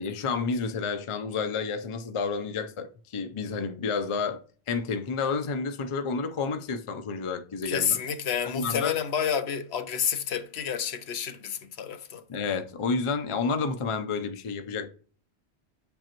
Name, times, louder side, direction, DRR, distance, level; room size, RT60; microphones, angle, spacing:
voice 1, 0.0-4.4 4.7-8.0 8.5-8.9 12.3-14.9, left 5 dB, 35° left, 0.5 m, -30 dB
voice 2, 7.6-12.2, left 8 dB, 75° left, 0.9 m, -29 dB
7.7 x 5.4 x 2.9 m
omnidirectional pair, 1.1 m